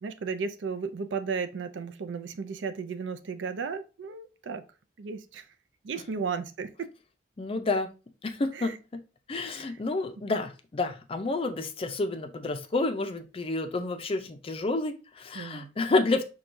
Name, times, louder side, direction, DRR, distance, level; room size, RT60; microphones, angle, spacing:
voice 1, 0.0-4.6 5.0-5.5 5.8-6.9 8.5-8.8 9.5-9.8 15.3-15.7, right 5 dB, 85° right, 0.4 m, -34 dB
voice 2, 7.4-7.9 8.2-9.0 9.3-16.2, left 3 dB, 30° left, 0.4 m, -29 dB
5.9 x 2.3 x 2.6 m
head